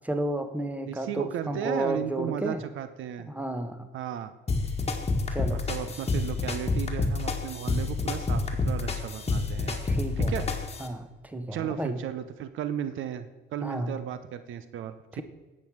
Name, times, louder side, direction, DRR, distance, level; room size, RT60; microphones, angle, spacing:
voice 1, 0.0-2.6 3.3-3.9 5.3-5.6 9.8-10.5 10.8-12.0 13.6-13.9 15.1-15.2, right 1 dB, 5° right, 8 dB, 1.3 m, -32 dB
voice 2, 0.9-3.3 3.9-4.3 5.5-9.8 10.2-10.4 11.5-15.2, right 10 dB, 80° right, 12 dB, 0.8 m, -35 dB
sound 1, 4.5-10.9, left 3 dB, 30° left, 1.7 m, -28 dB
10.5 x 7.7 x 6.3 m, 1.3 s
cardioid pair, 90°, 20 cm